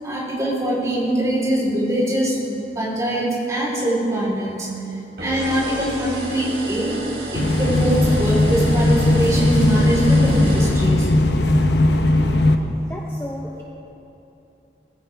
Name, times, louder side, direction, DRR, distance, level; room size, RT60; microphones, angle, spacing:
voice 1, 0.0-4.7 5.2-6.9 7.3-11.1, right 1 dB, 20° right, -6 dB, 4.0 m, -23 dB
sound 1, 5.2-11.4, right 1 dB, 70° right, 3.5 m, -32 dB
sound 2, 7.3-12.5, left 2 dB, 75° left, 0.9 m, -17 dB
voice 2, 12.8-13.6, left 1 dB, 10° left, -3 dB, 1.0 m, -34 dB
20.0 x 15.5 x 3.6 m, 2.9 s
head